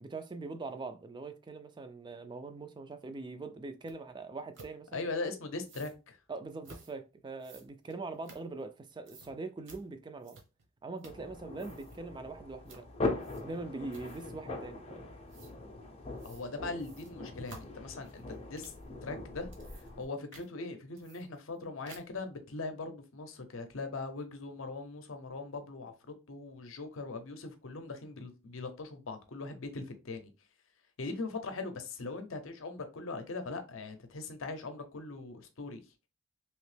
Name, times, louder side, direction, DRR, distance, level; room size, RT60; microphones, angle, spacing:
voice 1, 0.0-5.1 6.3-10.4 10.8-12.9 13.4-15.1, right 3 dB, 20° right, 0.3 m, -42 dB
sound 1, 3.9-4.0 4.5-4.7 5.6-6.0 6.6-6.9 7.4-8.8 9.1-9.3 9.7-9.8 10.2-10.7 11.0-11.3 11.5-12.0 12.7-12.9 13.2-13.6 13.9-14.4 15.3-15.5 16.2-16.5 16.8-18.9 19.3-20.1 20.3-20.5 21.0-21.6 21.9-22.2, right 3 dB, 60° right, 0.9 m, -54 dB
voice 2, 4.9-6.2 16.2-18.7 19.0-30.3 31.0-35.8, left 3 dB, 65° left, 0.6 m, -40 dB
sound 2, 11.1-20.1, left 2 dB, 30° left, 0.5 m, -41 dB
3.0 x 2.8 x 3.2 m
head